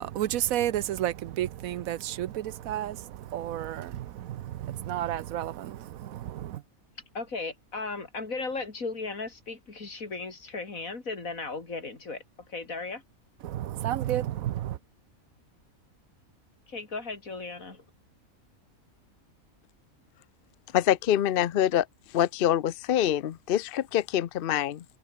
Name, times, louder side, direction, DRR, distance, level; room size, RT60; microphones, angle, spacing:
voice 1, 0.0-6.6 13.4-14.8, right 12 dB, 85° right, 1.1 m, -31 dB
voice 2, 7.1-12.2 12.5-13.0 16.7-17.8, left 3 dB, 75° left, 3.6 m, -36 dB
voice 3, 20.7-21.9 22.1-24.8, left 11 dB, 55° left, 0.6 m, -25 dB
omnidirectional pair, 1.4 m